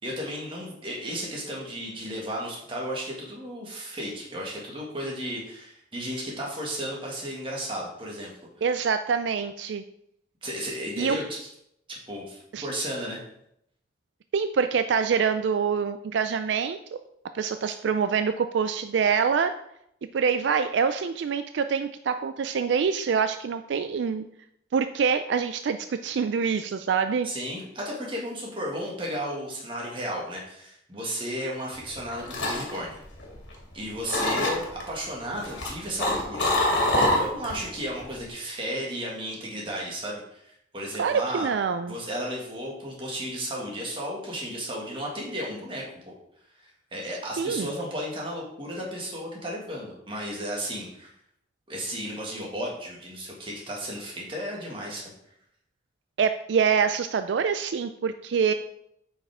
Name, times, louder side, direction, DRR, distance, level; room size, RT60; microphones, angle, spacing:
voice 1, 0.0-8.3 8.6-8.7 10.4-11.5 11.9-13.2 27.2-32.9 33.7-41.5 41.9-45.8 46.6-51.1 51.7-55.1, equal, 30° right, -3 dB, 2.0 m, -34 dB
voice 2, 8.6-9.8 11.0-11.2 12.5-12.7 14.3-16.8 17.3-19.5 20.1-24.2 24.7-27.3 41.0-41.9 47.4-47.7 56.2-58.5, right 6 dB, 75° right, 9 dB, 0.4 m, -25 dB
sound 1, 31.9-33.7 34.1-34.8 35.4-37.6 37.9-38.3, left 1 dB, 75° left, 2.3 m, -25 dB
8.5 x 5.5 x 3.6 m, 0.75 s
head